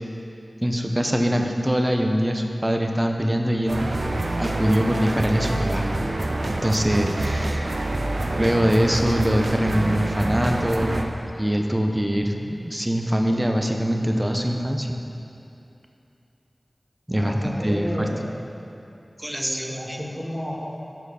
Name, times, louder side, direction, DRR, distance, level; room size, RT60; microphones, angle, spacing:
voice 1, 0.6-3.9 4.4-6.2 6.5-7.8 8.4-11.1 11.4-15.0 17.1-18.1 19.2-20.0, equal, 15° right, 3 dB, 0.7 m, -23 dB
sound 1, 3.7-11.0, right 2 dB, 60° right, 0.6 m, -26 dB
voice 2, 7.9-8.3 17.1-18.2 19.3-20.5, equal, 5° left, -9 dB, 1.6 m, -32 dB
13.0 x 4.6 x 4.9 m, 2.8 s
wide cardioid pair, 60°, 0 cm